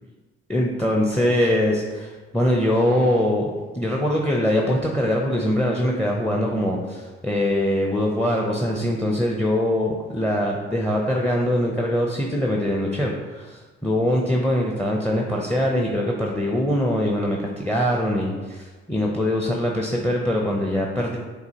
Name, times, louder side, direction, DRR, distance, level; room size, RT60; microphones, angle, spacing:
voice 1, 0.5-3.5 3.7-21.2, left 1 dB, 5° left, 0 dB, 0.6 m, -23 dB
6.6 x 2.4 x 2.8 m, 1.3 s
hypercardioid pair, 55°, 29 cm